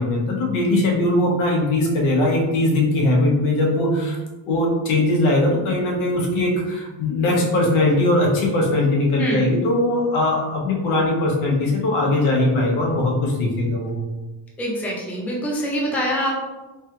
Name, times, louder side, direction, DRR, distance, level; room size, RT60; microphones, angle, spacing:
voice 1, 0.0-4.2 4.5-14.0, left 2 dB, 90° left, -1 dB, 1.0 m, -20 dB
voice 2, 14.6-16.3, equal, 5° left, -2 dB, 0.4 m, -24 dB
3.3 x 2.3 x 2.9 m, 1.1 s
cardioid pair, 135°, 47 cm